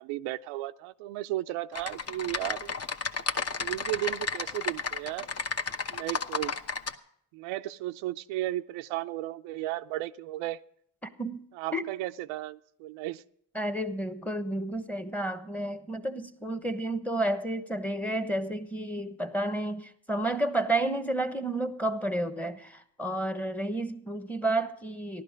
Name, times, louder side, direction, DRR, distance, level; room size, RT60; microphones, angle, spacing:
voice 1, 0.0-2.8 3.6-5.3 5.9-6.6 7.3-10.6 11.5-13.2, right 16 dB, 85° right, 0.7 m, -34 dB
Typing, 1.7-6.9, left 5 dB, 30° left, 1.0 m, -32 dB
voice 2, 11.0-11.4 11.7-11.8 13.5-25.2, right 1 dB, 5° left, 1.1 m, -31 dB
15.0 x 11.5 x 5.1 m
supercardioid pair, 90°, 48 cm